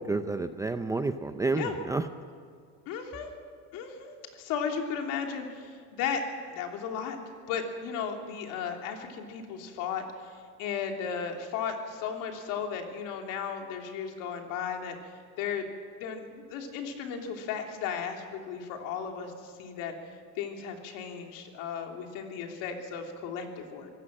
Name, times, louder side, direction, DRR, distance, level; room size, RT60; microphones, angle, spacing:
voice 1, 0.0-2.1, right 3 dB, 10° right, 9 dB, 0.5 m, -30 dB
voice 2, 2.9-3.3 3.7-6.2 6.5-7.2 7.5-10.3 10.6-15.0 15.4-15.7 16.0-19.9 20.4-23.9, left 7 dB, 60° left, 3 dB, 3.2 m, -35 dB
24.5 x 16.0 x 7.6 m, 2.1 s
supercardioid pair, 130°, 35 cm